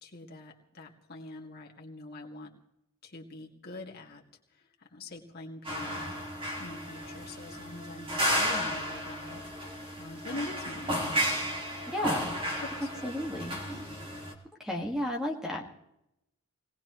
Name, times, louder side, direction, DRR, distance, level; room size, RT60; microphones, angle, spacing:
voice 1, 0.0-2.5 3.0-4.2 4.5-6.2 6.6-9.4 10.0-11.3 12.6-13.1, left 2 dB, 45° left, -1 dB, 2.2 m, -44 dB
sound 1, 5.6-14.3, equal, 25° right, 2.4 m, -33 dB
voice 2, 11.9-12.3 13.0-13.6 14.6-15.6, left 1 dB, ahead, 1 dB, 1.8 m, -32 dB
22.0 x 19.0 x 3.1 m, 0.83 s
head